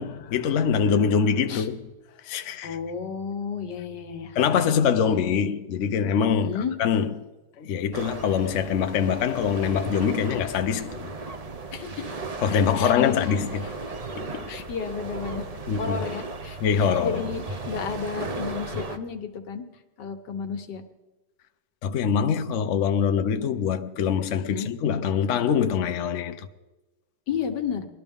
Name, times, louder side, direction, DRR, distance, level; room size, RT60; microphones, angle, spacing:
voice 1, 0.0-1.8 2.3-2.8 4.4-7.3 7.6-11.1 12.4-13.7 14.2-14.5 15.7-15.9 16.6-17.2 21.8-26.5, left 7 dB, 60° left, 0.8 m, -24 dB
voice 2, 2.6-4.7 6.3-6.7 11.7-12.2 12.7-13.1 13.6-13.7 14.5-15.5 15.8-19.6 20.0-20.8 24.5-24.7 27.3-27.9, left 6 dB, 75° left, 1.7 m, -32 dB
sound 1, 7.9-19.0, right 3 dB, 80° right, 0.3 m, -36 dB
21.5 x 12.0 x 3.6 m
omnidirectional pair, 1.9 m